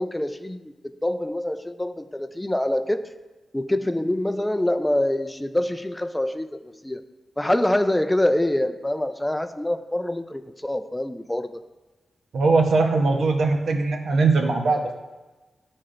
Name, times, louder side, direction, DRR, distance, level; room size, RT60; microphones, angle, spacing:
voice 1, 0.0-3.1 3.5-7.0 7.4-11.6, left 1 dB, 10° left, 8 dB, 0.3 m, -25 dB
voice 2, 12.3-15.0, right 3 dB, 80° right, 3 dB, 0.9 m, -20 dB
12.0 x 4.2 x 2.5 m, 1.2 s
wide cardioid pair, 150°, 0 cm